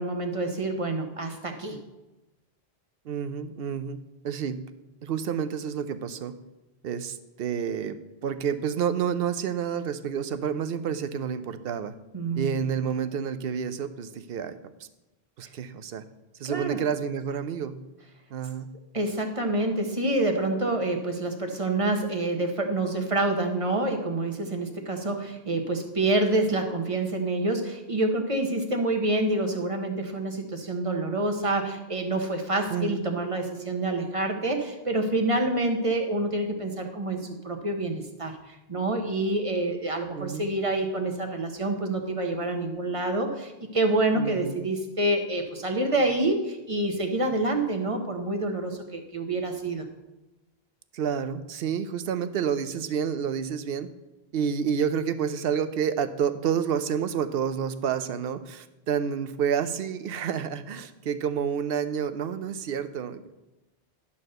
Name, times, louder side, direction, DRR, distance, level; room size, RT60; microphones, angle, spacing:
voice 1, 0.0-1.8 12.1-12.6 16.4-16.8 18.9-49.8, right 2 dB, 35° right, 4 dB, 1.0 m, -27 dB
voice 2, 3.1-4.0 4.2-4.6 5.0-6.3 6.8-11.9 12.4-14.6 15.4-16.0 16.4-17.8 18.3-18.7 32.7-33.1 40.1-40.4 44.1-44.7 50.9-53.9 54.3-63.3, right 7 dB, 70° right, 12 dB, 0.8 m, -29 dB
11.0 x 4.2 x 6.5 m, 1.0 s
omnidirectional pair, 1.1 m